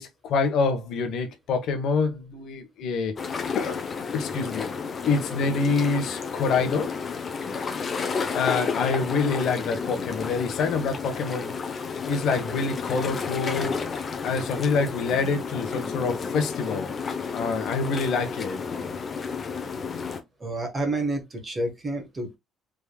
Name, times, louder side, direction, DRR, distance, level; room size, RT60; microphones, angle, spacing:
voice 1, 0.0-3.2 3.5-3.8 4.1-4.7 5.1-6.9 8.3-11.5 12.0-13.8 14.2-16.9 17.3-18.6, left 4 dB, 60° left, 1.1 m, -26 dB
sound 1, 3.2-20.2, left 5 dB, 25° left, 0.7 m, -31 dB
voice 2, 20.4-22.4, right 2 dB, 20° right, 1.2 m, -29 dB
5.0 x 3.6 x 2.3 m
cardioid pair, 175°, 0 cm